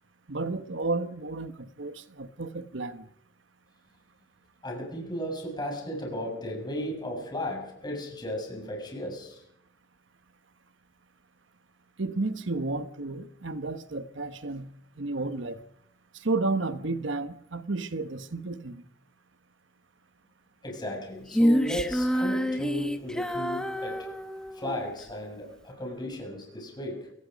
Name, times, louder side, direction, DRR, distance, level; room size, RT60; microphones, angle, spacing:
voice 1, 0.3-3.0 12.0-14.7 15.0-15.6 16.1-18.8, right 3 dB, 70° right, 1.2 m, -32 dB
voice 2, 4.6-9.4 20.6-24.1 24.5-27.1, equal, 20° left, 6.8 m, -35 dB
Female singing, 21.3-24.8, equal, 5° left, 1.3 m, -27 dB
29.0 x 17.5 x 5.3 m
head